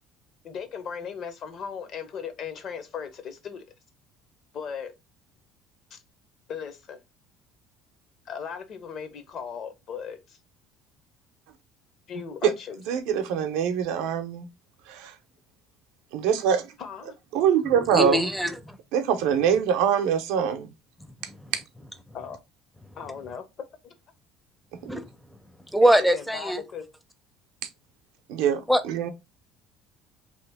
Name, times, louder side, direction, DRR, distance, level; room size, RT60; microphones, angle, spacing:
voice 1, 0.4-3.7 4.5-4.9 5.9-6.0 6.5-7.0 8.3-10.4 12.1-12.8 16.8-17.1 22.1-22.4 22.9-23.5 23.8-23.9 25.8-26.9, left 7 dB, 50° left, 0.7 m, -37 dB
voice 2, 12.9-14.5 14.9-15.1 16.1-16.7 17.3-18.3 18.9-20.7 21.5-21.6 24.8-24.9 28.3-29.1, right 8 dB, 85° right, 0.5 m, -24 dB
voice 3, 17.9-18.8 21.3-21.5 24.9-25.0 25.7-26.6 28.7-28.8, right 1 dB, ahead, 0.4 m, -22 dB
2.8 x 2.5 x 3.4 m
cardioid pair, 125°, 0 cm